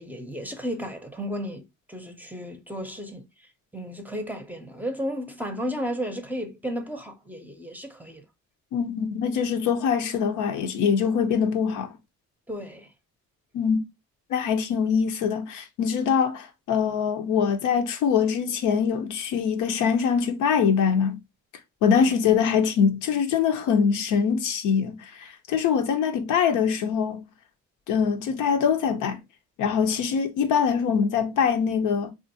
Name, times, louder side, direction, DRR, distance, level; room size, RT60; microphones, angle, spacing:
voice 1, 0.0-3.3 3.7-8.2 12.5-12.9 21.9-22.1, equal, 5° right, 0.6 m, -33 dB
voice 2, 8.7-11.9 13.5-13.8 14.3-21.2 21.8-25.0 25.5-27.2 27.9-29.2 29.6-32.1, left 7 dB, 90° left, 0.7 m, -23 dB
3.5 x 2.5 x 2.6 m
cardioid pair, 90°, 30 cm